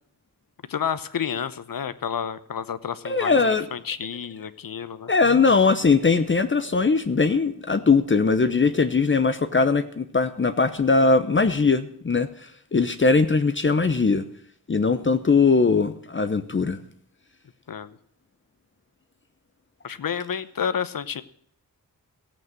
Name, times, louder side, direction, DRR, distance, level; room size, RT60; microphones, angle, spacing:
voice 1, 0.7-5.1 17.7-18.0 19.8-21.2, left 7 dB, 65° left, 14 dB, 0.9 m, -30 dB
voice 2, 3.0-3.7 5.1-12.3 12.7-14.2 14.7-16.8, left 4 dB, 30° left, 10 dB, 0.8 m, -20 dB
15.0 x 8.6 x 7.7 m, 0.64 s
wide cardioid pair, 110°, 36 cm